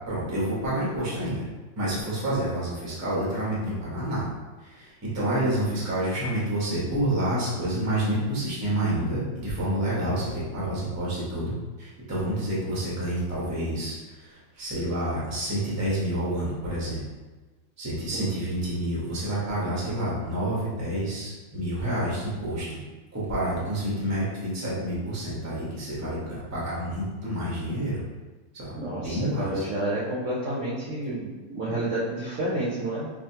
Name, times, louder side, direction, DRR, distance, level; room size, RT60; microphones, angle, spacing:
voice 1, 0.1-1.4 1.8-4.3 4.6-11.5 11.8-17.0 17.8-22.8 23.1-28.0 28.5-28.7 29.0-29.6, right 1 dB, 15° right, -7 dB, 0.5 m, -28 dB
voice 2, 28.7-33.1, right 1 dB, 65° right, -8 dB, 0.7 m, -30 dB
4.8 x 2.5 x 2.7 m, 1.3 s
omnidirectional pair, 2.1 m